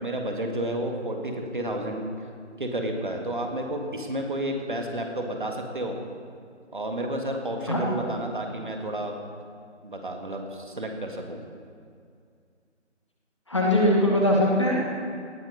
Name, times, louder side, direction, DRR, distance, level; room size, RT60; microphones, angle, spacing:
voice 1, 0.0-2.1 2.6-6.0 6.7-9.1 9.8-11.4, right 1 dB, 45° right, 3 dB, 1.8 m, -31 dB
voice 2, 13.5-14.9, left 1 dB, 25° left, -2 dB, 1.4 m, -21 dB
18.0 x 8.0 x 5.3 m, 2.3 s
figure-of-eight pair, 165°, 36 cm